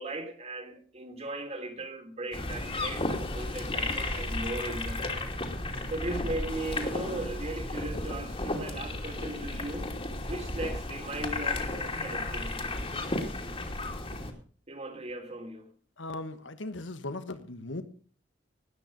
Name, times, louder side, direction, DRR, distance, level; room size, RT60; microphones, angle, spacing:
voice 1, 0.0-5.3 5.9-9.9 10.2-12.7 14.7-15.7, right 2 dB, 35° right, 6 dB, 3.0 m, -38 dB
sound 1, 2.3-14.3, left 2 dB, 30° left, 2.7 m, -34 dB
voice 2, 16.0-17.8, left 2 dB, 90° left, 11 dB, 1.4 m, -38 dB
19.0 x 9.3 x 5.3 m, 0.42 s
head